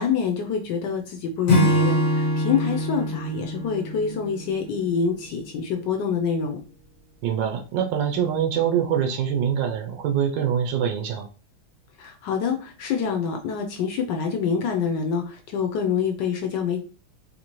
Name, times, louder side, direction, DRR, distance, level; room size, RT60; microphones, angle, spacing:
voice 1, 0.0-6.6 12.0-16.8, left 6 dB, 70° left, 3 dB, 1.1 m, -26 dB
Acoustic guitar / Strum, 1.5-5.0, equal, 40° left, 1.4 m, -24 dB
voice 2, 7.2-11.3, right 8 dB, 75° right, 4 dB, 1.2 m, -24 dB
4.2 x 2.7 x 2.9 m, 0.36 s
omnidirectional pair, 2.2 m